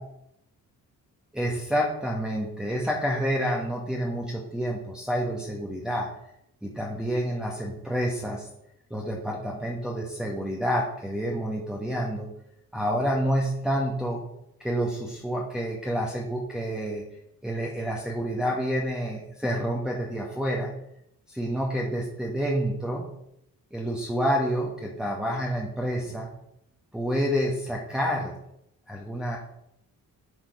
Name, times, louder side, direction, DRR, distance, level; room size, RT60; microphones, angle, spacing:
voice 1, 1.3-6.1 6.6-8.5 8.9-12.3 12.7-14.2 14.6-17.0 17.4-20.7 21.3-23.0 23.7-26.3 26.9-28.3 28.9-29.4, equal, ahead, -4 dB, 1.4 m, -28 dB
10.5 x 3.7 x 4.9 m, 0.78 s
cardioid pair, 75°, 35 cm